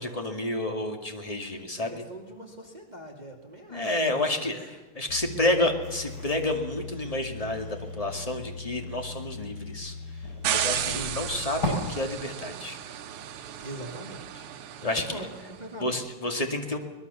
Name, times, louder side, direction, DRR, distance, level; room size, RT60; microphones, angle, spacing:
voice 1, 0.0-1.9 3.7-4.6 4.9-9.9 10.5-12.8 14.8-15.1 15.8-16.8, left 2 dB, 15° left, 4 dB, 2.2 m, -29 dB
voice 2, 1.8-4.8 10.7-11.2 13.6-14.5 14.8-16.1, right 1 dB, 20° right, 2 dB, 2.5 m, -42 dB
sound 1, 5.1-11.7, left 3 dB, 50° left, 5.9 m, -38 dB
sound 2, 10.4-15.6, right 10 dB, 90° right, 1.9 m, -34 dB
23.0 x 20.5 x 7.0 m, 1.2 s
omnidirectional pair, 2.4 m